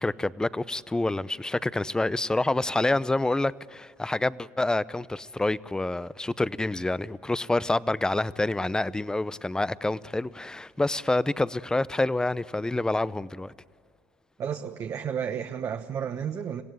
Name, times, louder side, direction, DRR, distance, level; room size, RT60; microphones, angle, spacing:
voice 1, 0.0-13.5, left 2 dB, 10° left, 0.6 m, -27 dB
voice 2, 14.4-16.6, right 8 dB, 45° right, 1.1 m, -32 dB
26.5 x 16.0 x 9.5 m
supercardioid pair, 90°, 7 cm